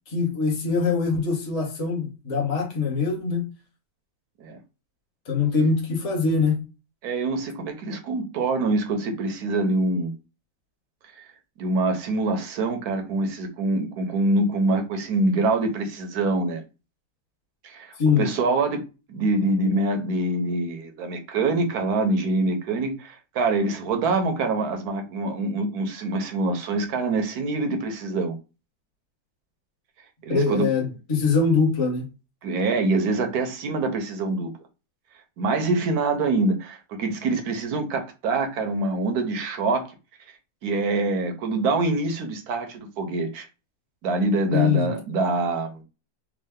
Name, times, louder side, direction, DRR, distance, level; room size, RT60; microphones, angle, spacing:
voice 1, 0.1-3.4 5.3-6.6 18.0-18.3 30.3-32.1 44.5-44.9, left 4 dB, 25° left, 0.9 m, -23 dB
voice 2, 7.0-10.1 11.1-11.2 11.6-16.6 17.6-18.8 19.1-28.4 30.2-30.7 32.4-34.5 35.4-39.9 40.6-43.5 44.0-45.8, right 2 dB, 65° right, 1.2 m, -25 dB
3.7 x 2.4 x 3.4 m
omnidirectional pair, 1.9 m